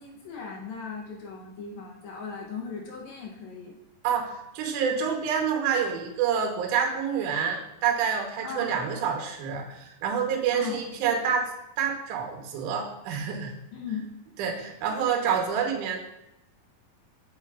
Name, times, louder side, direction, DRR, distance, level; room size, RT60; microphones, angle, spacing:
voice 1, 0.0-3.8 8.4-8.8 10.5-10.8 13.7-14.1, left 5 dB, 80° left, -1 dB, 1.6 m, -37 dB
voice 2, 4.0-11.5 11.8-13.5 14.4-16.0, right 7 dB, 70° right, 1 dB, 2.2 m, -27 dB
8.1 x 6.9 x 2.4 m, 0.85 s
omnidirectional pair, 4.3 m